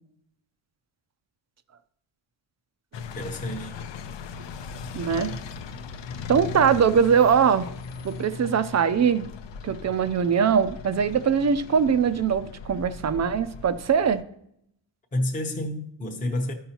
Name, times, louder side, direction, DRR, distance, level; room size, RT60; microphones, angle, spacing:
Motor Truck, 2.9-14.2, left 5 dB, 60° left, 0.7 m, -38 dB
voice 1, 3.1-3.8 15.1-16.5, left 1 dB, 15° left, 0.8 m, -29 dB
voice 2, 4.9-5.3 6.3-7.7 8.0-9.3 9.6-14.2, right 7 dB, 35° right, 0.5 m, -22 dB
14.0 x 5.5 x 2.9 m
wide cardioid pair, 145°, 49 cm